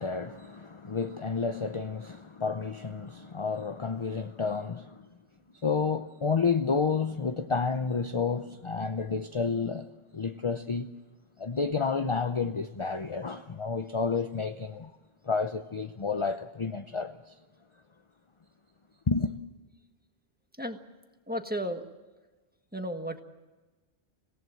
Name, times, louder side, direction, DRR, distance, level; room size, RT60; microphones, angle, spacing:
voice 1, 0.0-5.0 5.6-9.9 10.1-10.9 11.4-14.9 15.2-17.3 19.1-19.3, left 5 dB, 30° left, 0.7 m, -30 dB
voice 2, 21.3-21.9 22.7-23.2, equal, 10° right, 1.5 m, -33 dB
26.0 x 17.5 x 7.7 m
omnidirectional pair, 1.2 m